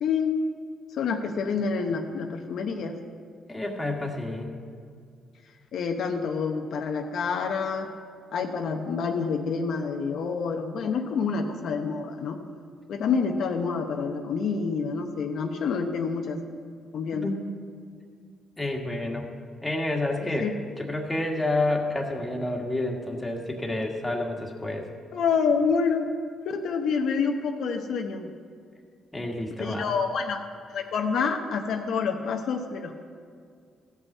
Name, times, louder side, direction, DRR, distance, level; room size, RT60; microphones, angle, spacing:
voice 1, 0.0-0.4 0.9-3.0 5.7-7.9 8.3-12.4 12.9-16.4 16.9-17.3 20.2-20.5 25.1-26.1 26.4-28.3 29.6-30.4 30.7-33.0, left 5 dB, 70° left, 3 dB, 0.9 m, -27 dB
voice 2, 3.5-4.5 17.1-17.4 18.6-19.3 19.6-20.5 20.8-24.9 29.1-29.9, left 2 dB, 15° left, 0 dB, 1.7 m, -29 dB
15.0 x 5.6 x 7.3 m, 2.2 s
cardioid pair, 90°, 0 cm